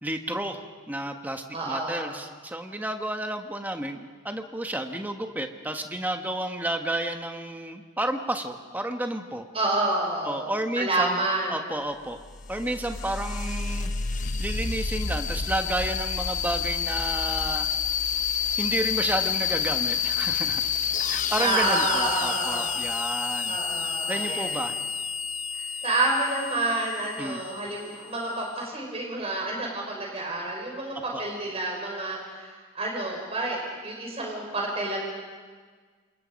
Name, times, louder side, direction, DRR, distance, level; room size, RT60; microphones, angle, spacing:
voice 1, 0.0-9.5 10.2-12.2 12.5-13.9 14.4-17.7 18.6-20.6 21.1-23.6 24.1-24.7 27.2-27.4 31.1-31.2, right 1 dB, 10° right, 5 dB, 1.3 m, -31 dB
voice 2, 1.5-2.1 9.5-11.6 21.4-22.7 23.5-24.5 25.5-35.0, right 2 dB, 30° right, -1 dB, 5.7 m, -29 dB
sound 1, 12.1-28.5, left 6 dB, 35° left, 0.9 m, -29 dB
28.5 x 27.5 x 5.3 m, 1.5 s
head